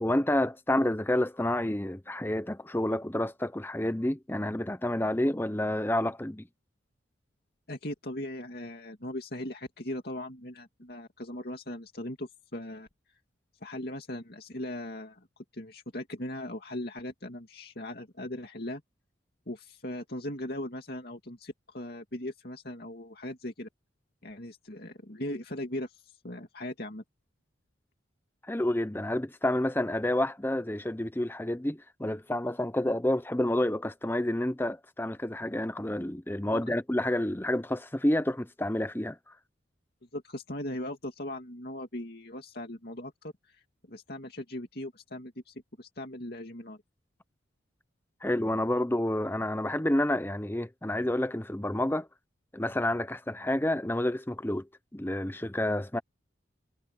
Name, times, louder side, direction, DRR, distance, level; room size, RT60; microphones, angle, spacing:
voice 1, 0.0-6.5 28.5-39.2 48.2-52.1 52.5-54.7 54.9-56.0, left 1 dB, 10° left, 0.8 m, -29 dB
voice 2, 7.7-12.9 13.6-15.3 15.5-18.8 19.5-23.7 24.2-27.0 36.5-36.7 40.1-43.6 43.9-46.8, left 1 dB, 50° left, 2.5 m, -39 dB
head